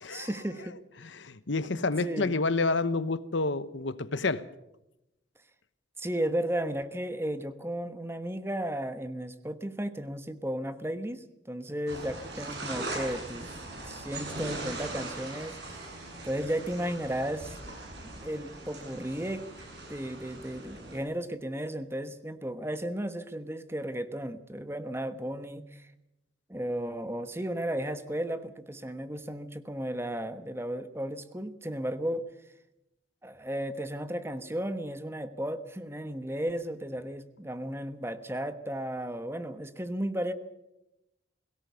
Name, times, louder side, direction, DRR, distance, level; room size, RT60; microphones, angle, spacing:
voice 1, 0.1-0.8 1.7-2.4 6.0-13.6 13.9-15.8 16.2-17.5 18.0-19.4 19.9-25.9 26.5-32.2 33.2-40.3, right 1 dB, 15° right, 1.2 m, -34 dB
voice 2, 1.0-4.4, left 3 dB, 75° left, 1.0 m, -29 dB
sound 1, 11.9-21.0, right 2 dB, 60° right, 7.5 m, -40 dB
22.0 x 17.5 x 7.0 m
head